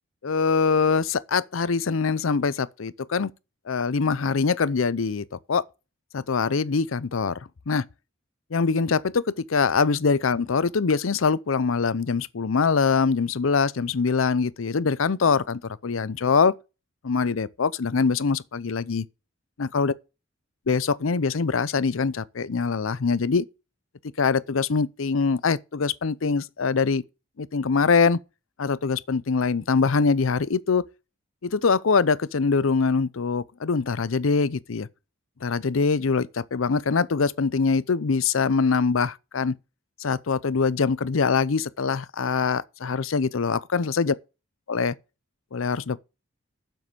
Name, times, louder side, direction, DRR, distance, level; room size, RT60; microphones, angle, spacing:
voice 1, 0.2-3.3 3.7-5.6 6.1-7.4 7.7-7.8 8.5-16.5 17.0-19.0 19.6-19.9 20.7-23.4 24.2-27.0 27.4-28.2 28.6-30.8 31.4-34.9 35.4-39.6 40.0-44.1 44.7-44.9 45.5-46.0, left 5 dB, 80° left, 0.6 m, -23 dB
7.7 x 7.6 x 6.8 m
head